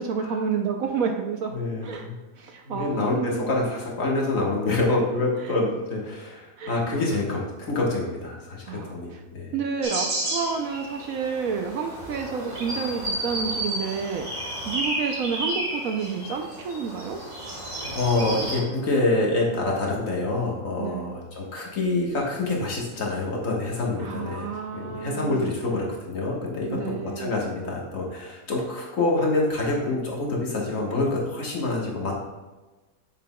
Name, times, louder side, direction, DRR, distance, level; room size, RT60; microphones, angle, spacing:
voice 1, 0.0-1.5 1.8-2.1 2.4-3.5 5.4-5.5 6.6-6.8 8.7-9.2 9.5-17.2 20.8-21.1 24.0-25.5 26.7-27.3, right 6 dB, 70° right, 4 dB, 1.0 m, -30 dB
voice 2, 1.5-2.1 2.6-7.4 7.7-9.5 17.9-32.2, left 2 dB, 55° left, -2 dB, 1.7 m, -26 dB
sound 1, 9.8-18.6, right 1 dB, 50° right, 1.9 m, -32 dB
7.6 x 6.6 x 2.2 m, 1.2 s
omnidirectional pair, 1.7 m